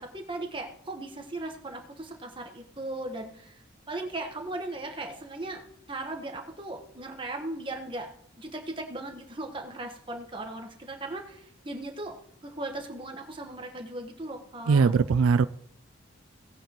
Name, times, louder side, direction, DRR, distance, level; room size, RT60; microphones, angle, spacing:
voice 1, 0.0-3.6 3.9-5.6 5.9-8.1 8.4-12.2 12.4-14.9, right 2 dB, 25° right, 3 dB, 1.3 m, -37 dB
voice 2, 14.7-15.4, right 5 dB, 90° right, 15 dB, 0.4 m, -20 dB
18.0 x 9.0 x 3.0 m, 0.70 s
head